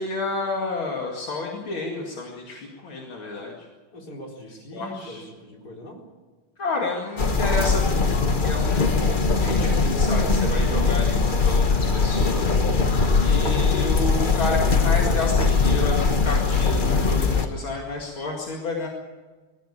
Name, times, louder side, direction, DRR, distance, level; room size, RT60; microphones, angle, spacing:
voice 1, 0.0-3.7 4.7-5.2 6.6-12.6 13.2-18.9, left 3 dB, 70° left, -1 dB, 3.1 m, -30 dB
voice 2, 3.9-6.0, equal, 45° left, -1 dB, 4.7 m, -41 dB
sound 1, 7.2-17.5, left 4 dB, 30° left, 1.2 m, -21 dB
22.0 x 15.5 x 8.7 m, 1.4 s
omnidirectional pair, 2.3 m